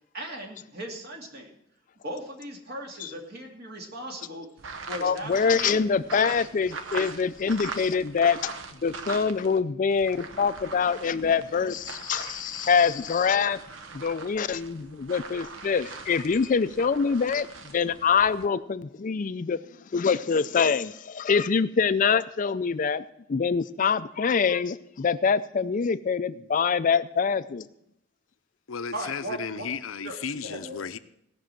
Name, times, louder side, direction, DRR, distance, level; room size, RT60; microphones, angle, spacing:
voice 1, 0.1-1.5 2.0-4.5 4.9-5.9 28.9-29.7 30.0-30.2 30.4-30.8, right 1 dB, 50° right, 1 dB, 2.5 m, -38 dB
sound 1, 4.6-9.6 9.9-18.5, right 4 dB, 70° right, 1.0 m, -41 dB
voice 2, 5.0-8.5 8.8-13.6 13.9-17.5 17.7-19.6 19.9-27.7, left 6 dB, 40° left, 13 dB, 0.4 m, -25 dB
voice 3, 28.7-31.0, left 6 dB, 85° left, 11 dB, 0.7 m, -34 dB
17.0 x 6.2 x 7.7 m, 0.78 s
head